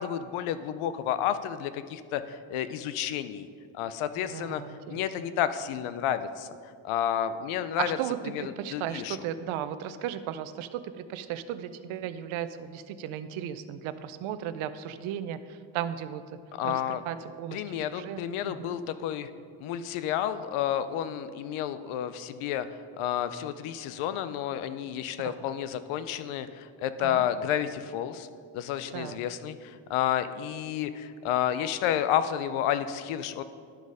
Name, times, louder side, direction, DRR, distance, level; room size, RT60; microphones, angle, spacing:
voice 1, 0.0-3.5 3.7-6.5 6.8-8.0 8.3-8.4 8.7-9.2 16.6-17.0 17.5-19.3 19.6-22.7 23.0-28.3 28.5-33.4, left 10 dB, 85° left, 12 dB, 0.6 m, -30 dB
voice 2, 4.2-5.3 7.8-16.2 16.6-18.8 27.0-27.2 28.9-29.2, right 10 dB, 85° right, 12 dB, 0.6 m, -36 dB
11.5 x 4.1 x 4.8 m, 2.2 s
cardioid pair, 90°, 48 cm